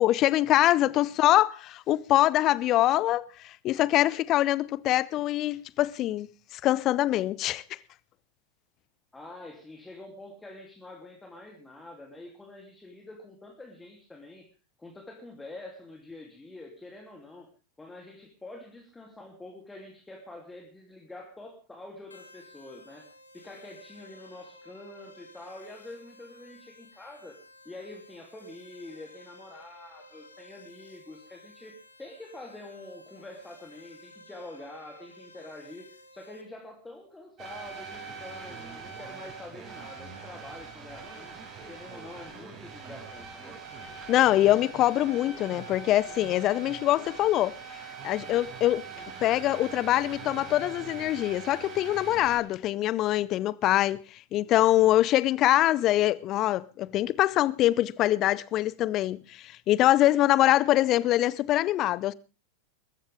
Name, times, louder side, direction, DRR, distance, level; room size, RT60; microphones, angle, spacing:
voice 1, 0.0-6.3 6.5-7.8 44.1-47.6 48.0-48.8 49.2-62.1, left 14 dB, 35° left, 0.8 m, -24 dB
voice 2, 9.1-14.5 14.8-17.5 17.8-27.4 27.6-41.3 41.7-43.6, left 2 dB, 10° left, 3.1 m, -46 dB
sound 1, 22.1-36.4, left 1 dB, 80° left, 2.3 m, -53 dB
sound 2, 37.4-52.4, right 5 dB, 35° right, 6.7 m, -42 dB
22.0 x 14.0 x 3.6 m
figure-of-eight pair, 90°, 0 cm